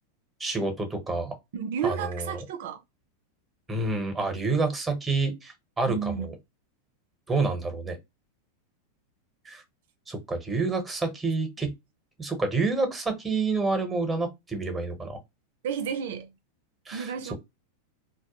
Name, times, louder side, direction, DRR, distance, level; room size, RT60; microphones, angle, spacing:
voice 1, 0.4-1.3 1.8-2.4 3.7-6.3 7.3-8.0 9.5-9.6 10.1-11.7 12.2-15.2 16.9-17.3, right 3 dB, 10° right, 0.9 m, -28 dB
voice 2, 1.5-2.8 5.9-6.3 15.6-16.3 16.9-17.3, right 7 dB, 75° right, 0.4 m, -31 dB
2.2 x 2.0 x 2.9 m
hypercardioid pair, 120°, 0 cm